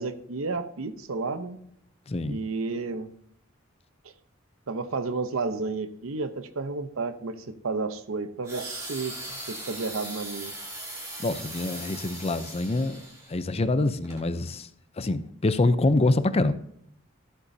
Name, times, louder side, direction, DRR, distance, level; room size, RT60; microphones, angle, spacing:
voice 1, 0.0-1.6 2.3-3.1 4.7-10.5, right 3 dB, 85° right, 0.8 m, -32 dB
voice 2, 2.1-2.4 11.2-13.0 13.3-14.7 15.0-16.5, left 2 dB, 30° left, 0.5 m, -25 dB
sound 1, 8.4-13.4 14.0-14.2, right 1 dB, 15° right, 2.3 m, -39 dB
14.0 x 8.3 x 2.7 m
head